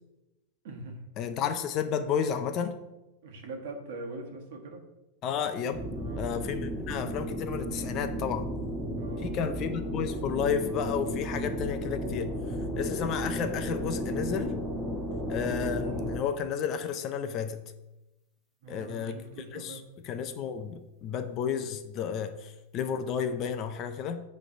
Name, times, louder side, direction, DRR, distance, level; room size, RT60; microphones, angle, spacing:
voice 1, 0.6-1.0 3.2-4.8 5.9-6.3 9.0-9.4 18.6-19.9, right 2 dB, 50° right, 3 dB, 1.4 m, -42 dB
voice 2, 1.2-2.8 5.2-5.8 6.2-8.5 9.2-12.3 12.8-14.5 15.3-17.6 18.7-19.2 19.5-24.2, left 7 dB, 25° left, 8 dB, 0.4 m, -32 dB
sound 1, 5.7-16.2, equal, 5° right, 1.1 m, -34 dB
8.8 x 3.2 x 5.5 m, 0.99 s
supercardioid pair, 175°, 0 cm